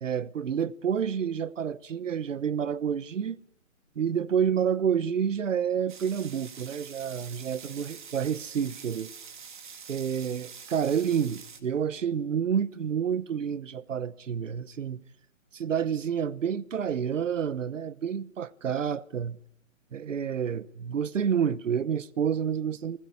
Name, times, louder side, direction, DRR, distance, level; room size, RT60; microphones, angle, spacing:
voice 1, 0.0-3.4 4.0-9.1 9.9-15.0 15.5-19.4 19.9-23.0, right 8 dB, 65° right, 1.1 m, -29 dB
sound 1, 5.9-11.6, right 6 dB, 35° right, 2.3 m, -46 dB
30.0 x 21.0 x 8.3 m
hypercardioid pair, 175°, 40 cm